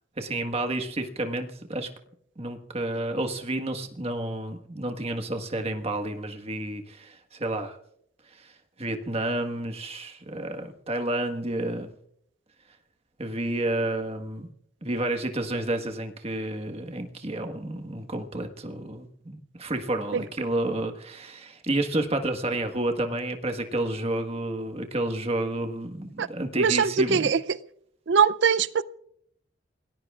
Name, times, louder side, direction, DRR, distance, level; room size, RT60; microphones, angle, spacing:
voice 1, 0.2-1.9 2.4-7.8 8.3-8.5 8.8-11.9 13.2-14.5 14.8-27.3, right 1 dB, 35° right, 5 dB, 1.5 m, -30 dB
voice 2, 26.6-27.4 28.1-28.8, right 6 dB, 65° right, 18 dB, 0.5 m, -21 dB
28.5 x 19.0 x 2.4 m, 0.68 s
head